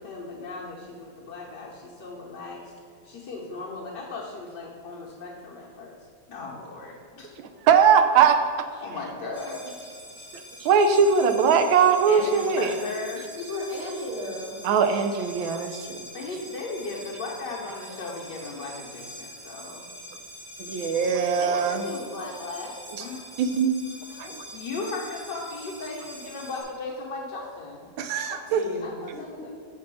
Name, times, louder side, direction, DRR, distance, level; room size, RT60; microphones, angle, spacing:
voice 1, 0.0-2.7 3.0-6.0 6.3-7.3 8.8-10.3 12.1-13.3 16.1-19.9 21.4-23.4 23.9-27.8 28.3-29.5, left 3 dB, 65° left, -3 dB, 1.5 m, -37 dB
voice 2, 7.4-8.4 10.6-12.7 14.6-16.1 20.6-21.9 23.4-23.7 24.2-24.4 28.0-28.6, right 6 dB, 85° right, 7 dB, 1.4 m, -21 dB
sound 1, 9.3-26.6, equal, 60° right, 2.6 m, -44 dB
voice 3, 13.4-14.6 28.5-29.5, left 1 dB, 35° right, -6 dB, 2.4 m, -34 dB
7.4 x 4.1 x 6.1 m, 2.2 s
omnidirectional pair, 2.1 m